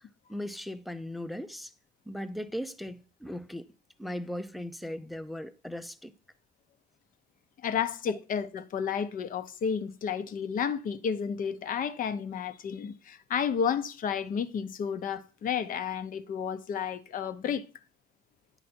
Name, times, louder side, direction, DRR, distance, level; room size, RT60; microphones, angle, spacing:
voice 1, 0.3-1.7 2.1-3.7 4.0-6.1, left 1 dB, ahead, 0.5 m, -38 dB
voice 2, 7.6-17.6, left 7 dB, 55° left, 0.8 m, -31 dB
9.7 x 5.0 x 4.4 m
cardioid pair, 110°, 17 cm